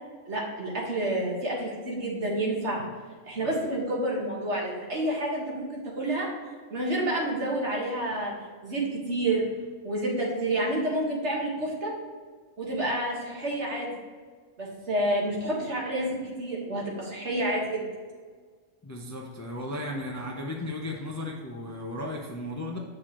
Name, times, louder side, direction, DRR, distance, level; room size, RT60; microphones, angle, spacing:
voice 1, 0.3-2.8 3.2-6.3 6.7-8.3 8.6-8.8 9.1-9.5 9.8-11.9 12.6-13.9 14.6-17.8, right 1 dB, 65° right, -3 dB, 1.8 m, -29 dB
voice 2, 18.8-22.8, left 1 dB, 20° left, 0 dB, 0.5 m, -35 dB
8.0 x 6.3 x 3.0 m, 1.5 s
omnidirectional pair, 1.3 m